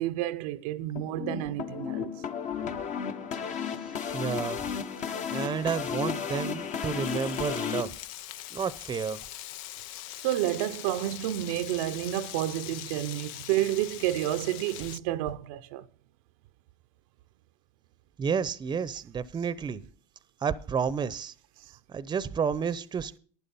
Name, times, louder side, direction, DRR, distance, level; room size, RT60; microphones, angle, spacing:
voice 1, 0.0-2.1 10.2-15.9 21.6-21.7, right 14 dB, 70° right, 0.7 m, -30 dB
sound 1, 1.0-7.8, left 7 dB, 40° left, 1.3 m, -33 dB
voice 2, 4.1-4.7 5.3-7.9 8.5-9.2 18.2-19.8 20.4-21.3 21.9-23.2, right 6 dB, 25° right, 0.8 m, -30 dB
Frying (food), 7.0-15.0, left 14 dB, 70° left, 0.5 m, -42 dB
11.5 x 9.8 x 5.4 m
hypercardioid pair, 95°, 18 cm